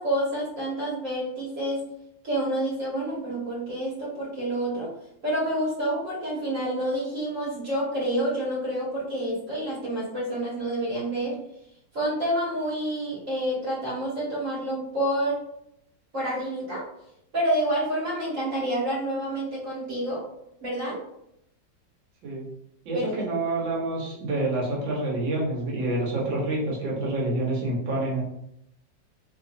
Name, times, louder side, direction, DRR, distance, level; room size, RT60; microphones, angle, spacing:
voice 1, 0.0-1.8 2.2-4.9 5.2-11.4 11.9-15.4 16.1-16.8 17.3-20.2 20.6-21.0 22.9-23.1, right 1 dB, 45° right, -6 dB, 1.6 m, -28 dB
voice 2, 22.9-28.2, right 2 dB, 75° right, -3 dB, 1.7 m, -27 dB
3.5 x 3.0 x 2.6 m, 0.77 s
omnidirectional pair, 2.1 m